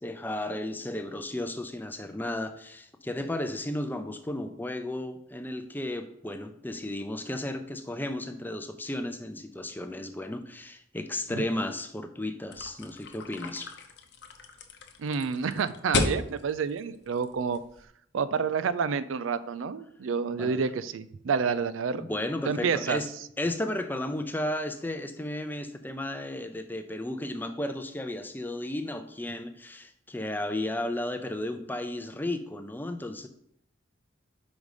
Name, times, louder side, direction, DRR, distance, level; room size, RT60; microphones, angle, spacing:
voice 1, 0.0-13.8 20.4-20.6 21.9-23.1 23.4-33.3, left 1 dB, 10° left, 8 dB, 0.5 m, -34 dB
sound 1, 12.5-17.8, left 3 dB, 60° left, 0.8 m, -34 dB
voice 2, 15.0-17.6 18.1-22.0 22.5-23.0, right 5 dB, 80° right, 14 dB, 0.4 m, -29 dB
5.3 x 5.2 x 4.8 m, 0.70 s
head